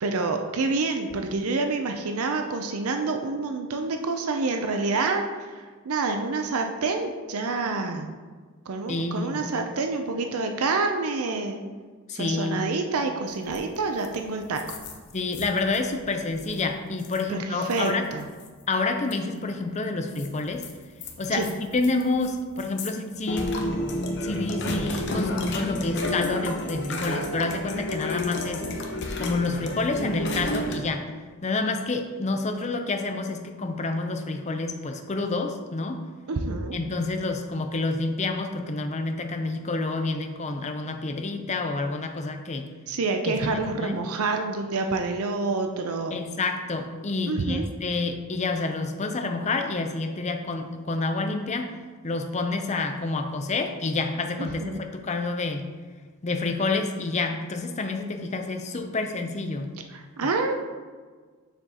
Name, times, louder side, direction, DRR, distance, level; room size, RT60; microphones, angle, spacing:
voice 1, 0.0-8.1 8.7-11.6 12.1-14.8 17.3-18.3 21.3-21.5 36.3-36.8 42.9-46.2 47.3-47.6 54.4-54.8 59.9-60.6, right 3 dB, 75° right, 5 dB, 0.6 m, -27 dB
voice 2, 8.9-9.4 12.1-12.6 15.1-18.0 18.7-20.7 21.2-23.8 24.2-28.6 29.2-31.1 31.4-36.0 36.7-42.7 43.3-44.0 46.1-51.7 52.0-55.7 56.2-59.7 60.2-60.3, left 3 dB, 30° left, 5 dB, 0.6 m, -28 dB
sound 1, 13.5-13.8 14.0-14.2 14.4-15.8 16.3-16.6 17.0-17.2 17.6-18.5 19.1-19.2 20.2-22.3 22.6-22.9 23.3-30.8, left 1 dB, 55° left, 0.9 m, -30 dB
6.8 x 6.8 x 2.9 m, 1.5 s
head